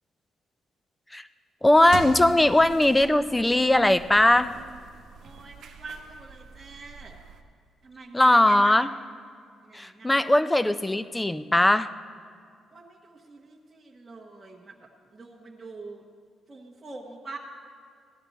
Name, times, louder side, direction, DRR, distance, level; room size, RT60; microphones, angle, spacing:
voice 1, 1.6-4.5 8.1-8.9 9.7-11.9, left 1 dB, 10° left, 13 dB, 0.4 m, -20 dB
sound 1, 1.7-7.4, right 5 dB, 75° right, 0.9 m, -42 dB
voice 2, 5.2-7.2 7.8-8.9 9.6-10.3 12.7-14.7 15.1-16.0 16.5-17.4, right 3 dB, 20° right, -4 dB, 1.2 m, -44 dB
16.5 x 11.5 x 4.1 m, 2.2 s
cardioid pair, 120°, 0 cm